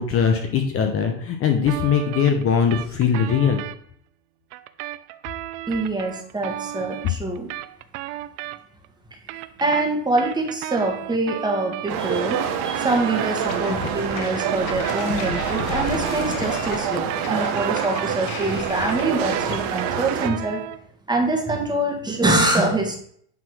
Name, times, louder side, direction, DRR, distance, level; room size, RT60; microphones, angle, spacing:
voice 1, 0.0-3.6, left 7 dB, 30° left, 5 dB, 0.9 m, -21 dB
sound 1, 1.7-3.8 4.5-8.9 9.1-13.4 14.1-18.5 18.7-20.9, right 15 dB, 65° right, 0.7 m, -35 dB
voice 2, 5.7-7.5 9.6-20.6 21.1-23.0, right 2 dB, 10° right, 2 dB, 1.4 m, -24 dB
sound 2, 11.9-20.3, right 8 dB, 45° right, 1.0 m, -27 dB
sound 3, 13.4-19.6, left 6 dB, 65° left, 1.3 m, -34 dB
9.4 x 3.8 x 6.1 m, 0.64 s
supercardioid pair, 140°, 48 cm